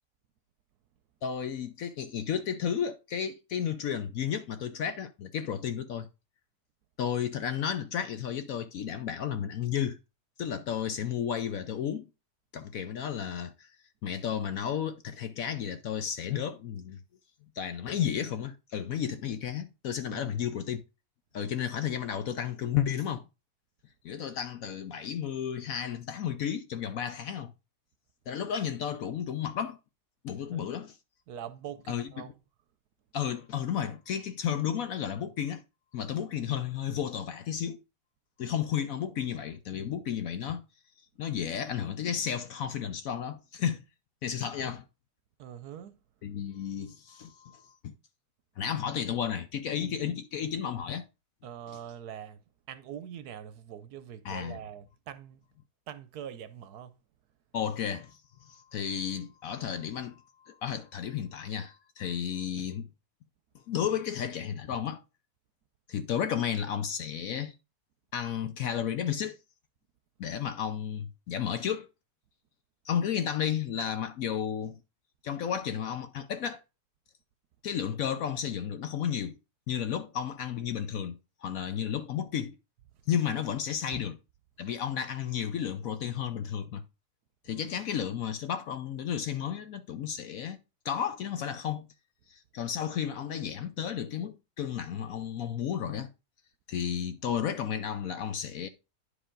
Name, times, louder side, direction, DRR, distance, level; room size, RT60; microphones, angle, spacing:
voice 1, 1.2-6.1 7.0-10.0 10.4-12.1 12.5-13.7 14.0-17.0 17.5-20.8 21.3-23.2 24.0-27.5 28.3-29.8 30.2-30.9 31.9-32.1 33.1-35.6 35.9-37.8 38.4-40.6 41.2-43.8 44.2-44.9 46.2-47.9 48.6-51.0 54.2-54.6 57.5-62.9 63.7-65.0 65.9-67.5 68.1-69.4 70.2-71.9 72.8-74.8 75.2-76.6 77.6-79.4 79.7-82.6 83.1-84.2 84.6-86.8 87.4-90.6 90.8-91.9 92.3-96.1 96.7-98.7, left 8 dB, 65° left, 0.9 m, -33 dB
voice 2, 31.3-32.3 45.4-46.0 51.4-55.5 55.9-57.0 83.9-84.0, right 9 dB, 70° right, 1.1 m, -43 dB
10.0 x 4.9 x 3.8 m
omnidirectional pair, 1.9 m